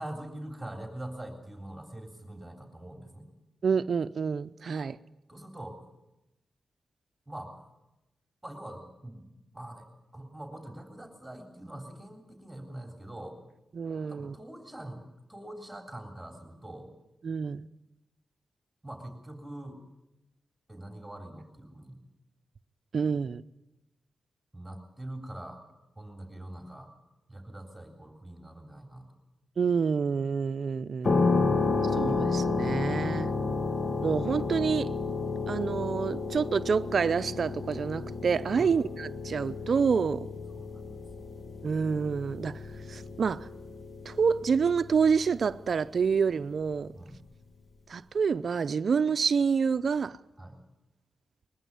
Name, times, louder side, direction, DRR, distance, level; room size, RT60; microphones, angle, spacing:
voice 1, 0.0-3.3 5.3-5.8 7.3-7.6 8.4-9.3 9.5-9.9 10.1-13.4 14.1-15.0 15.3-16.9 18.8-19.8 20.7-22.0 24.5-25.6 26.0-26.9 27.3-29.1 38.6-38.7 40.5-40.7 46.9-47.2 50.4-50.6, right 1 dB, 10° right, 3.6 m, -43 dB
voice 2, 3.6-5.0 13.7-14.3 17.2-17.7 22.9-23.4 29.6-31.3 31.9-33.3 34.0-34.9 35.5-40.3 41.6-42.6 42.9-43.5 44.0-46.9 47.9-50.2, right 6 dB, 65° right, 0.7 m, -28 dB
sound 1, 31.0-45.7, left 3 dB, 50° left, 2.2 m, -31 dB
21.0 x 15.0 x 9.7 m
cardioid pair, 80°, 0 cm